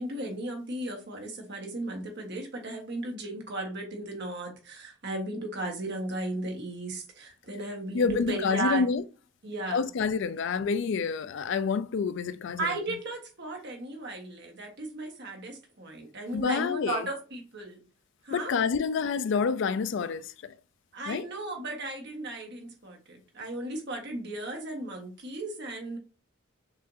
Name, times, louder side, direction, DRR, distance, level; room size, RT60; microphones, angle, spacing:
voice 1, 0.0-8.8 9.4-9.9 12.6-17.8 18.2-18.5 20.9-26.0, right 2 dB, 60° right, 1.4 m, -35 dB
voice 2, 7.9-9.0 9.7-12.7 16.3-17.1 18.3-20.5 21.1-21.3, left 5 dB, 65° left, 0.4 m, -28 dB
6.1 x 2.5 x 2.6 m
head